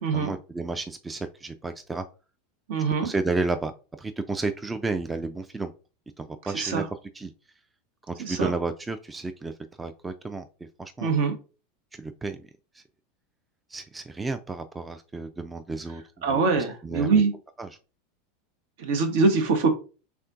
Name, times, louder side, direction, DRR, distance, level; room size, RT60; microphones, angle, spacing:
voice 1, 0.1-2.0 3.0-3.7 4.0-5.7 6.2-6.8 7.1-7.3 8.1-9.5 9.8-10.5 10.8-11.1 12.0-12.4 13.7-16.4 16.8-17.2 17.6-17.7, right 3 dB, 15° right, 8 dB, 0.3 m, -31 dB
voice 2, 2.7-3.1 6.5-6.8 8.2-8.5 11.0-11.4 16.2-17.3 18.8-19.7, right 4 dB, 65° right, 7 dB, 0.9 m, -23 dB
4.3 x 3.5 x 2.5 m, 0.35 s
hypercardioid pair, 85°, 0 cm